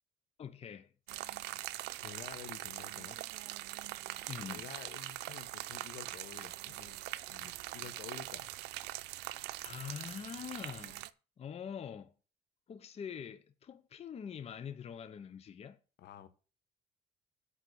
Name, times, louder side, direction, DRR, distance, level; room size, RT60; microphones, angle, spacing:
voice 1, 0.4-0.9 4.3-4.7 9.6-11.0 11.4-12.1 12.7-15.8, left 8 dB, 35° left, 0.7 m, -44 dB
sound 1, 1.1-11.1, right 17 dB, 85° right, 0.5 m, -43 dB
voice 2, 2.0-3.2 4.4-7.0 7.3-8.6 16.0-16.3, left 10 dB, 75° left, 1.2 m, -50 dB
8.4 x 5.8 x 6.8 m
cardioid pair, 110°, 17 cm